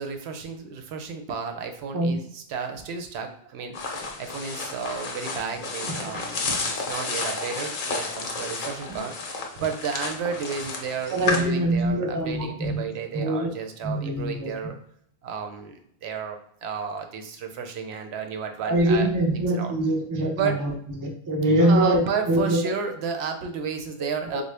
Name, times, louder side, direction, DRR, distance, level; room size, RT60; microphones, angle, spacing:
voice 1, 0.0-9.1 9.6-14.8 15.2-19.7 20.3-20.6 21.6-24.4, right 6 dB, 85° right, 5 dB, 0.8 m, -32 dB
sound 1, 3.7-11.4, left 4 dB, 60° left, 0.7 m, -31 dB
voice 2, 11.1-12.8 13.1-13.5 13.8-14.5 18.6-20.7 21.0-22.6 24.3-24.4, right 1 dB, 30° right, 1 dB, 0.4 m, -23 dB
3.7 x 2.0 x 3.3 m, 0.67 s
omnidirectional pair, 1.1 m